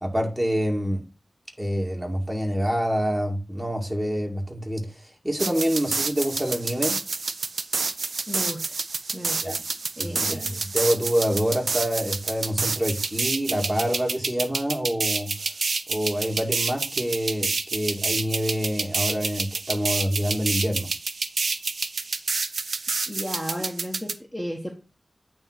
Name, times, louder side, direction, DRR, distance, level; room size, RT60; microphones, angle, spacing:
voice 1, 0.0-1.0 1.6-4.9 5.2-7.0 9.4-9.6 10.0-15.3 15.9-20.9, equal, 15° right, 1 dB, 2.0 m, -26 dB
sound 1, 5.4-24.1, right 4 dB, 75° right, 0.6 m, -28 dB
voice 2, 8.3-8.8 9.1-9.4 10.0-10.6 23.1-24.7, equal, 5° left, 0 dB, 1.2 m, -34 dB
8.9 x 3.1 x 5.9 m, 0.32 s
wide cardioid pair, 75°, 0 cm